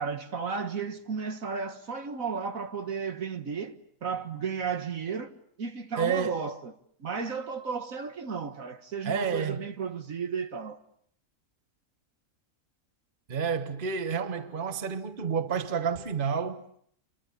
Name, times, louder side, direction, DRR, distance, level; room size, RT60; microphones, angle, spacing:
voice 1, 0.0-6.7 7.0-10.8, right 5 dB, 60° right, 1.9 m, -34 dB
voice 2, 6.0-6.4 9.0-9.6 13.3-16.6, right 6 dB, 35° right, 1.4 m, -29 dB
30.0 x 24.0 x 8.3 m
omnidirectional pair, 1.6 m